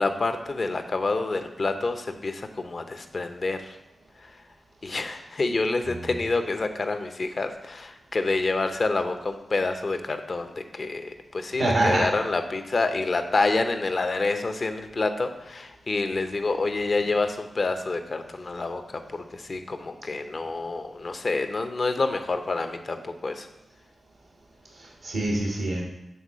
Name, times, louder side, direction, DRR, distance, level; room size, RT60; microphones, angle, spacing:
voice 1, 0.0-3.8 4.2-4.4 4.8-23.5, left 3 dB, 55° left, 7 dB, 0.7 m, -28 dB
voice 2, 11.6-12.1 24.7-25.8, right 2 dB, 90° right, -2 dB, 1.2 m, -25 dB
7.1 x 3.8 x 6.2 m, 0.91 s
cardioid pair, 40°, 0 cm